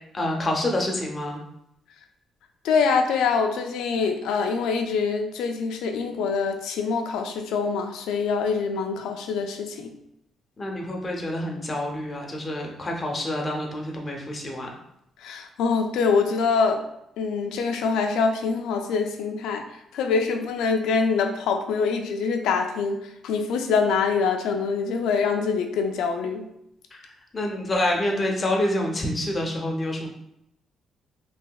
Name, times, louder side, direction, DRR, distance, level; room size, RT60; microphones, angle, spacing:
voice 1, 0.1-1.4 10.6-14.7 26.9-27.0 27.3-30.1, left 1 dB, 30° left, 0 dB, 0.7 m, -27 dB
voice 2, 2.6-9.9 15.2-16.8 17.2-19.6 19.9-26.4, left 5 dB, 85° left, 5 dB, 0.4 m, -24 dB
3.2 x 2.7 x 2.2 m, 0.78 s
cardioid pair, 90°, 0 cm